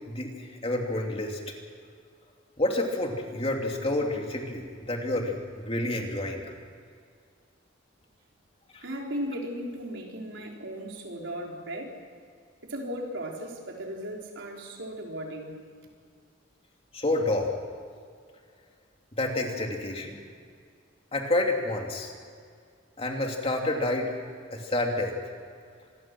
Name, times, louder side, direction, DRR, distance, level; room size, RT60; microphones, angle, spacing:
voice 1, 0.1-1.4 2.6-6.5 8.7-8.8 16.9-17.5 19.1-20.2 21.1-22.1 23.0-24.2 24.5-25.3, left 1 dB, 30° left, 1 dB, 3.0 m, -29 dB
voice 2, 8.8-12.0 12.6-15.6, equal, 75° right, 0 dB, 4.3 m, -36 dB
26.5 x 21.5 x 6.2 m, 2.1 s
head